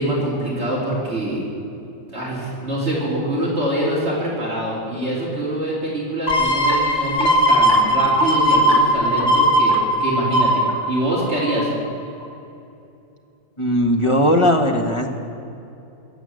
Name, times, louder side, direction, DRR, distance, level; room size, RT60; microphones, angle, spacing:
voice 1, 0.0-1.5 2.1-11.7, right 1 dB, 45° right, -5 dB, 3.4 m, -24 dB
sound 1, 6.3-11.8 12.2-12.3, equal, 75° left, 2.6 m, -18 dB
voice 2, 13.6-15.1, equal, 20° left, 3 dB, 1.4 m, -18 dB
22.0 x 8.2 x 7.7 m, 2.7 s
omnidirectional pair, 1.7 m